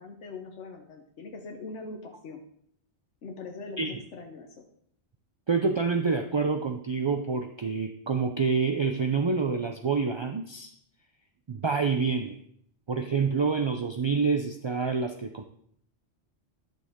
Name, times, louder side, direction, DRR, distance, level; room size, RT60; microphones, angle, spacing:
voice 1, 0.0-2.4 3.2-4.6, left 3 dB, 90° left, 2 dB, 1.3 m, -42 dB
voice 2, 5.5-10.7 11.5-12.4 12.9-15.4, right 5 dB, 40° right, 5 dB, 0.4 m, -27 dB
11.5 x 6.7 x 3.6 m, 0.66 s
omnidirectional pair, 1.2 m